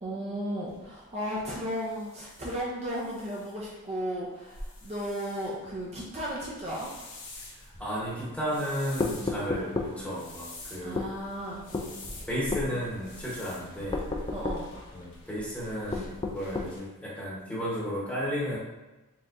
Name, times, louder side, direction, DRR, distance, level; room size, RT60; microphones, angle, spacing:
voice 1, 0.0-6.9 10.8-12.3 14.3-14.9 15.9-16.1, equal, 30° right, -5 dB, 0.6 m, -35 dB
sound 1, 0.6-16.8, left 1 dB, 55° left, 1.1 m, -47 dB
voice 2, 7.8-11.0 12.3-14.0 14.9-18.6, equal, 5° left, -6 dB, 1.0 m, -33 dB
sound 2, 9.0-10.0 11.0-11.1 11.7-11.9 12.5-12.7 13.9-14.7 15.9-16.8, left 3 dB, 20° left, 0.3 m, -31 dB
4.4 x 3.5 x 2.6 m, 1.1 s
head